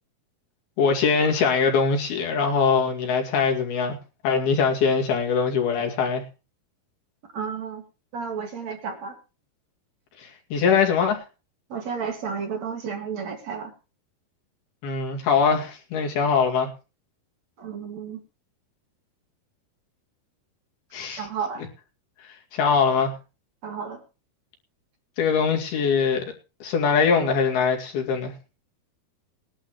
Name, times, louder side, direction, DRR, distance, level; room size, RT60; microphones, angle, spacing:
voice 1, 0.8-4.0 4.2-6.2 10.2-11.2 14.8-16.7 20.9-21.3 22.2-23.1 25.2-26.3 26.6-28.3, left 5 dB, 80° left, 1 dB, 4.4 m, -22 dB
voice 2, 7.3-7.8 8.1-9.2 11.7-13.7 17.6-18.2 21.2-21.6 23.6-24.0, right 6 dB, 50° right, 3 dB, 3.0 m, -32 dB
20.5 x 11.5 x 3.0 m, 0.31 s
omnidirectional pair, 4.4 m